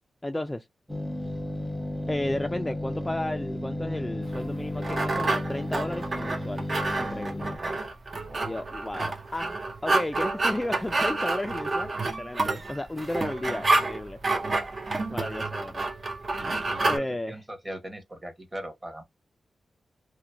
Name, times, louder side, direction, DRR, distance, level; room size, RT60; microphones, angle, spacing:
voice 1, 0.2-0.7 2.1-6.7 7.0-7.4 8.4-14.4 15.1-15.9 16.8-17.3, left 1 dB, 15° left, 0.3 m, -33 dB
sound 1, 0.9-7.6, left 1 dB, ahead, 0.8 m, -33 dB
sound 2, 4.3-17.0, right 2 dB, 40° right, 0.5 m, -29 dB
voice 2, 7.5-7.9 8.2-8.6 13.3-13.4 14.8-15.3 16.4-19.0, right 1 dB, 20° right, 1.2 m, -41 dB
2.9 x 2.1 x 2.6 m
cardioid pair, 75°, 0 cm